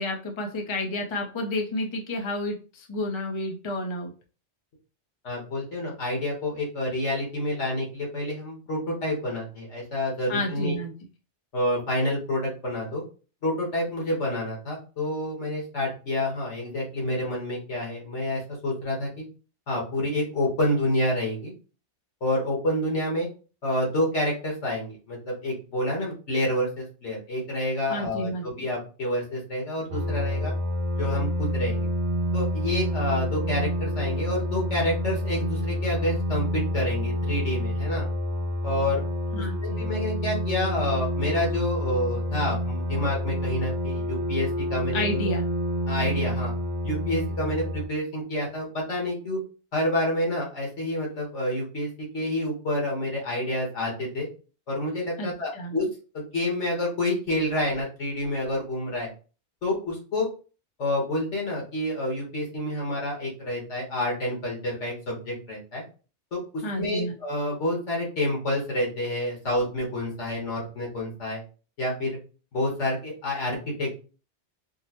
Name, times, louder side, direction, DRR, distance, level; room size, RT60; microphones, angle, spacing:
voice 1, 0.0-4.1 10.3-10.9 27.9-28.7 39.3-39.8 44.9-45.4 55.2-55.8 66.6-67.1, left 1 dB, 30° left, 2 dB, 0.6 m, -30 dB
voice 2, 5.2-10.8 11.5-13.0 13.4-19.3 19.7-21.5 22.2-23.3 23.6-30.5 31.0-31.9 32.3-38.1 38.6-39.0 39.4-45.2 45.9-46.5 46.8-49.4 49.7-54.3 54.7-55.9 56.1-59.1 59.6-60.3 60.8-65.8 66.3-66.4 66.8-71.4 71.8-72.2 72.5-73.9, left 1 dB, 85° left, -2 dB, 1.8 m, -28 dB
sound 1, 29.9-47.8, equal, 70° right, 0.9 m, -28 dB
4.6 x 2.1 x 2.9 m, 0.35 s
omnidirectional pair, 1.2 m